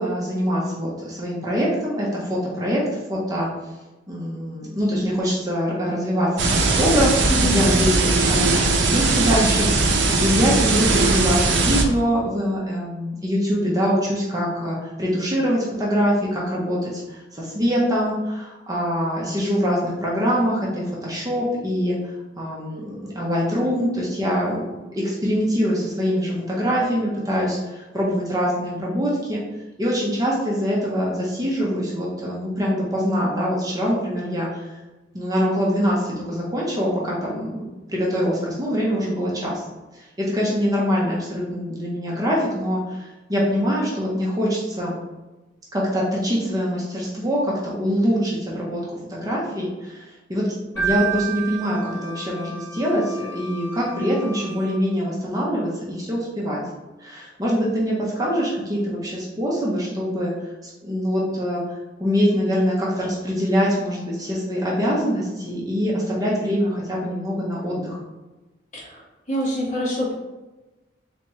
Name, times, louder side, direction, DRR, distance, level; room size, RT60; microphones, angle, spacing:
voice 1, 0.0-2.8 3.1-3.5 4.1-24.7 25.0-29.4 29.8-34.7 35.1-37.6 37.9-39.7 40.0-44.9 45.7-48.8 49.1-50.4 50.7-56.6 57.0-60.5 60.8-61.6 62.0-68.0, equal, 20° right, -5 dB, 0.7 m, -24 dB
sound 1, 6.4-11.8, right 3 dB, 75° right, 0.5 m, -19 dB
voice 2, 7.3-7.6 68.7-69.0 69.3-70.1, equal, 40° left, -5 dB, 1.2 m, -25 dB
Wind instrument woodwind instrument, 50.7-54.8, equal, 15° left, 0.8 m, -39 dB
Keyboard (musical), 50.8-52.6, right 10 dB, ahead, 1.4 m, -28 dB
3.4 x 3.0 x 3.0 m, 1.1 s
head